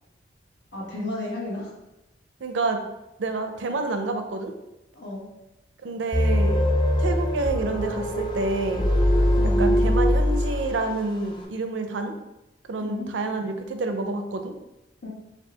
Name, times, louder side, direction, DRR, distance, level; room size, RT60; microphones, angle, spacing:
voice 1, 0.7-1.7 4.9-5.3 9.4-9.7 12.8-13.1 15.0-15.1, left 2 dB, 65° left, -5 dB, 1.4 m, -33 dB
voice 2, 2.4-2.8 3.2-4.5 5.8-6.6 7.0-8.8 9.6-12.1 12.7-14.5, right 3 dB, 85° right, 6 dB, 0.5 m, -28 dB
sound 1, 6.1-11.1, equal, 25° left, 0.4 m, -22 dB
4.4 x 2.3 x 3.4 m, 0.94 s
head